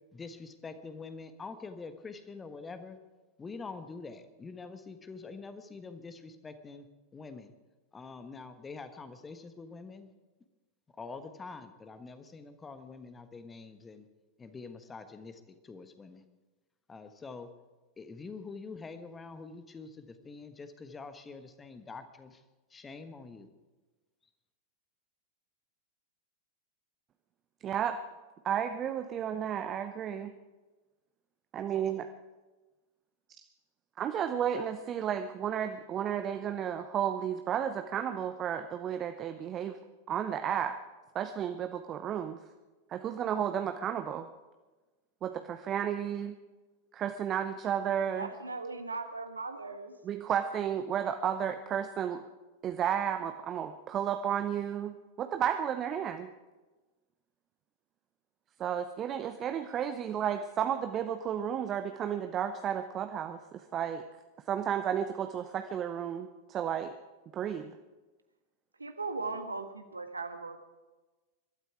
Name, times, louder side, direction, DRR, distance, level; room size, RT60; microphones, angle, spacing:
voice 1, 0.1-3.0 3.4-6.9 7.1-7.5 7.9-10.1 11.0-14.1 14.4-16.3 16.9-17.5 18.0-22.4 22.7-23.5, left 4 dB, 15° left, 9 dB, 1.4 m, -45 dB
voice 2, 27.6-28.0 28.4-30.3 31.5-32.0 34.0-39.8 40.1-40.7 41.1-42.4 42.9-44.3 45.2-46.4 46.9-48.3 50.0-52.2 52.6-56.3 58.6-64.0 64.5-66.9 67.3-67.7, right 9 dB, 30° right, 8 dB, 0.8 m, -32 dB
voice 3, 48.1-49.9 68.8-70.6, right 3 dB, 80° right, 7 dB, 1.4 m, -38 dB
22.5 x 12.5 x 4.8 m, 1.2 s
figure-of-eight pair, 90°, 0 cm